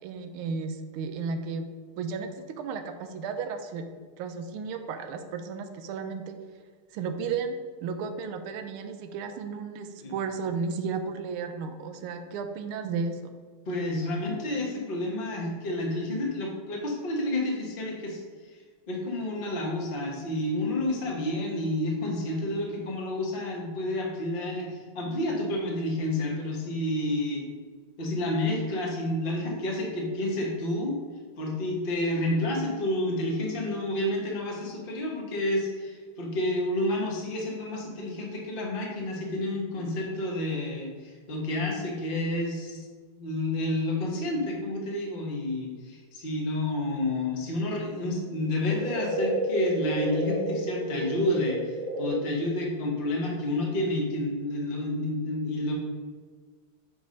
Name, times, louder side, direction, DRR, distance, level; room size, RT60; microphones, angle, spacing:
voice 1, 0.0-1.7 2.0-3.8 4.2-6.4 6.9-13.4, right 5 dB, 80° right, 7 dB, 1.5 m, -34 dB
voice 2, 13.7-27.5 28.0-31.0 31.4-42.9 43.1-55.7, left 1 dB, 30° left, -1 dB, 1.1 m, -30 dB
sound 1, 48.3-52.1, right 1 dB, 25° right, 1.0 m, -31 dB
8.4 x 3.4 x 5.2 m, 1.5 s
omnidirectional pair, 2.4 m